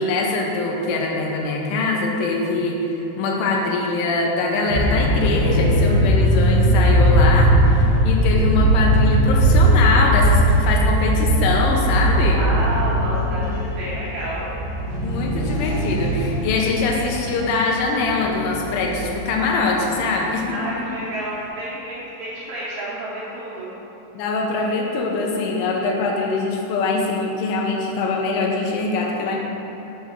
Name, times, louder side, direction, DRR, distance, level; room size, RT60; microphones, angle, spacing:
voice 1, 0.0-12.4 15.0-20.9 24.2-29.4, left 3 dB, 80° left, -1 dB, 3.2 m, -23 dB
sound 1, 4.7-20.2, equal, 60° left, 2.8 m, -19 dB
voice 2, 12.3-14.4 20.5-23.7, right 1 dB, 70° right, -8 dB, 2.4 m, -30 dB
8.1 x 3.5 x 6.6 m, 3.0 s
omnidirectional pair, 5.5 m